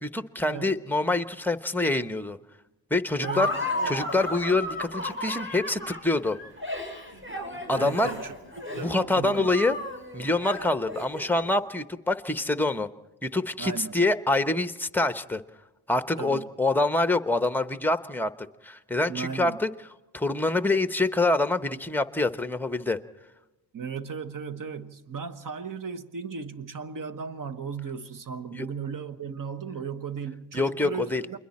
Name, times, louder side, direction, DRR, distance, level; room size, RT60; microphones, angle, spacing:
voice 1, 0.0-2.4 2.9-3.5 3.9-6.4 7.7-8.1 8.8-9.8 10.1-12.9 13.2-15.4 15.9-19.7 20.1-23.0 28.5-28.7 30.5-31.2, left 2 dB, 5° left, 1.0 m, -26 dB
Laughter, 3.2-11.5, left 1 dB, 25° right, 7.1 m, -34 dB
voice 2, 3.2-4.0 7.7-8.3 8.7-9.8 13.6-13.9 16.2-16.5 19.1-19.6 23.7-31.4, right 6 dB, 45° right, 1.4 m, -36 dB
29.0 x 22.0 x 4.3 m
cardioid pair, 70°, 47 cm